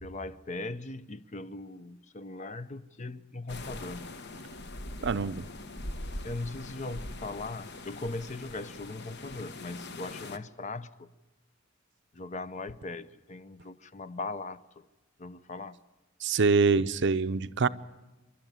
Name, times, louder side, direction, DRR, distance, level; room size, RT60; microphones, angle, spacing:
voice 1, 0.0-4.1 6.2-11.1 12.1-14.9 15.2-15.8, left 3 dB, 35° left, 0.6 m, -39 dB
sound 1, 3.5-10.4, left 2 dB, 55° left, 1.0 m, -42 dB
voice 2, 5.0-5.5 16.2-17.7, right 4 dB, 55° right, 0.6 m, -25 dB
28.0 x 12.0 x 9.5 m
head